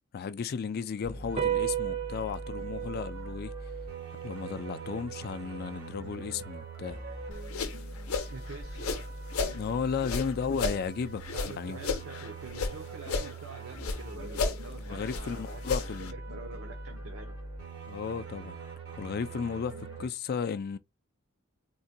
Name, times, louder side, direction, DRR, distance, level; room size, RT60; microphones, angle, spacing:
voice 1, 0.1-3.5 4.2-7.0 9.5-11.8 14.2-14.4 14.9-16.1 17.9-18.6 19.0-20.8, left 6 dB, 45° left, 0.3 m, -34 dB
sound 1, 1.0-20.1, right 2 dB, 85° right, 1.2 m, -42 dB
sound 2, 1.4-8.1, right 11 dB, 30° right, 0.5 m, -37 dB
sound 3, 7.3-9.6 10.0-12.8 13.0-14.0 14.3-16.1, left 4 dB, 80° left, 0.6 m, -33 dB
voice 2, 8.3-9.2 11.3-17.3, right 3 dB, 70° right, 0.7 m, -46 dB
3.8 x 2.2 x 2.6 m
head